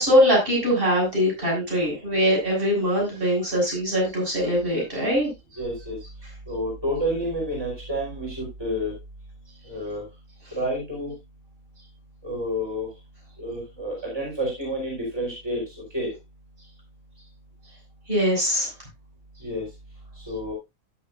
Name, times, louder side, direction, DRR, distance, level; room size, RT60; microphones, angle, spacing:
voice 1, 0.0-5.3 18.1-18.7, equal, 40° right, -3 dB, 7.7 m, -22 dB
voice 2, 5.6-6.0 6.5-8.9 9.7-10.0 10.5-11.1 12.2-12.9 13.4-15.6 15.9-16.1 19.4-19.7 20.2-20.5, equal, 20° right, -3 dB, 5.2 m, -29 dB
16.5 x 7.3 x 2.6 m, 0.22 s
omnidirectional pair, 1.4 m